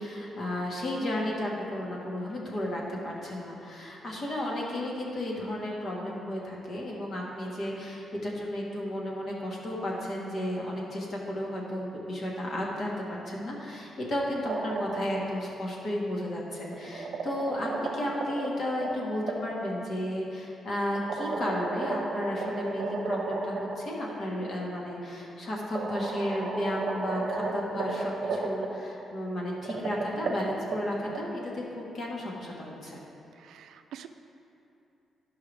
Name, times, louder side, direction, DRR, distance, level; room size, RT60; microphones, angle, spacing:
voice 1, 0.0-33.0, left 1 dB, 40° left, -3 dB, 1.4 m, -33 dB
sound 1, 14.3-15.3 16.5-19.4 20.9-23.8 24.1-24.2 25.2-25.3 25.7-28.7 29.5-31.2, right 3 dB, 50° right, 0.9 m, -33 dB
voice 2, 33.4-34.1, right 10 dB, 80° right, 8 dB, 0.4 m, -46 dB
12.5 x 5.6 x 3.4 m, 2.9 s
wide cardioid pair, 180°, 0 cm